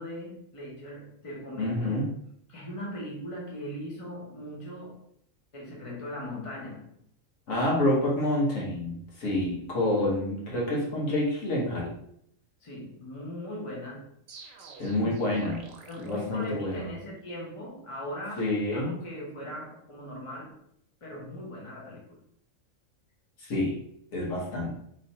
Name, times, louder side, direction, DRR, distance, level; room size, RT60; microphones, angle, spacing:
voice 1, 0.0-2.1 2.5-5.0 5.5-7.0 12.6-14.1 15.9-20.6 21.0-22.2, equal, 25° left, -3 dB, 1.1 m, -39 dB
voice 2, 1.6-2.1 7.5-11.9 14.8-15.6 16.0-16.9 18.4-18.9 23.4-23.8 24.1-24.7, left 1 dB, 80° left, -4 dB, 1.6 m, -28 dB
sound 1, 14.3-17.1, right 5 dB, 75° right, 1.1 m, -45 dB
3.2 x 3.1 x 4.1 m, 0.71 s
omnidirectional pair, 1.4 m